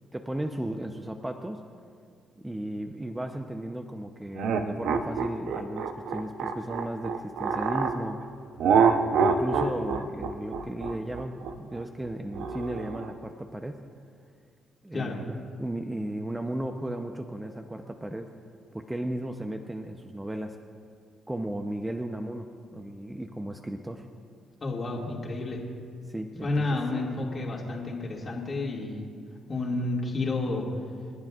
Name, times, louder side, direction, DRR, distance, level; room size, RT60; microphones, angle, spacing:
voice 1, 0.1-1.6 2.4-8.2 9.1-13.8 14.8-18.3 18.7-20.6 21.3-24.0 26.1-26.8, right 1 dB, 10° right, 5 dB, 0.7 m, -35 dB
sound 1, 4.3-8.0 8.6-13.1, right 6 dB, 80° right, 0.8 m, -26 dB
voice 2, 24.6-25.6 26.4-29.1 29.5-30.7, left 2 dB, 35° left, -2 dB, 2.2 m, -30 dB
29.0 x 10.5 x 2.5 m, 2.2 s
cardioid pair, 90°, 0 cm